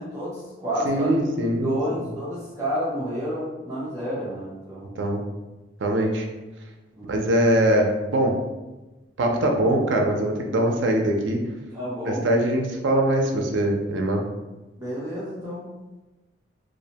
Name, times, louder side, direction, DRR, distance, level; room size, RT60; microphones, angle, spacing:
voice 1, 0.0-1.3 1.6-5.0 6.9-7.2 11.7-12.2 14.8-15.7, equal, 15° right, -10 dB, 0.5 m, -30 dB
voice 2, 0.8-1.8 5.0-5.2 5.8-6.3 7.1-8.3 9.2-11.4 12.1-14.2, right 1 dB, 75° right, 2 dB, 0.4 m, -22 dB
2.5 x 2.0 x 2.7 m, 1.1 s
head